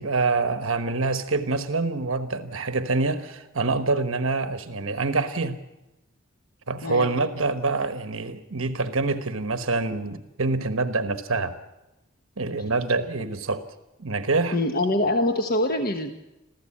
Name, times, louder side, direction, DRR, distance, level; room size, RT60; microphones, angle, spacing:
voice 1, 0.0-5.6 6.7-11.5 12.4-13.6 14.0-14.6, right 3 dB, 65° right, 9 dB, 1.2 m, -26 dB
voice 2, 14.5-16.1, left 1 dB, 45° left, 5 dB, 1.3 m, -24 dB
27.0 x 15.0 x 8.7 m, 1.0 s
head